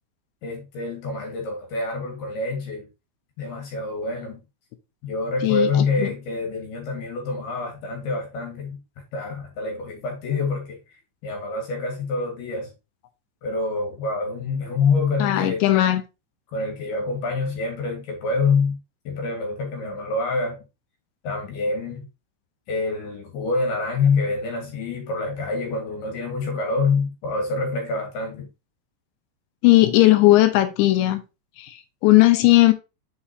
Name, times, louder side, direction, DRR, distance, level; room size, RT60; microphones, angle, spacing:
voice 1, 0.4-2.9 3.4-4.4 5.0-8.8 9.1-10.8 11.2-12.7 13.4-15.6 16.5-18.8 19.0-20.6 21.2-22.1 22.7-28.5, left 4 dB, 65° left, 3.2 m, -26 dB
voice 2, 5.4-6.1 15.2-16.0 29.6-31.2 31.6-31.8 32.0-32.7, left 17 dB, 85° left, 2.9 m, -17 dB
6.8 x 5.7 x 2.7 m
omnidirectional pair, 5.4 m